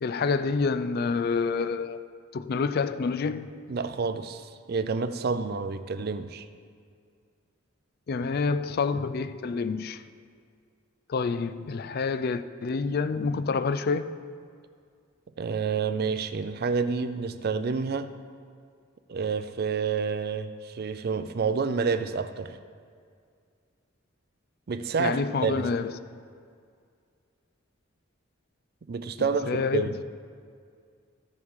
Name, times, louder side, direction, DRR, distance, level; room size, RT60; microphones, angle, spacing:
voice 1, 0.0-2.0 2.3-3.5 8.1-10.0 11.1-14.1 25.0-25.9 29.2-30.0, left 4 dB, 45° left, 0.4 m, -28 dB
voice 2, 3.7-6.5 15.4-18.1 19.1-22.6 24.7-25.7 28.9-29.9, right 5 dB, 50° right, 0.4 m, -29 dB
14.5 x 5.5 x 4.7 m
head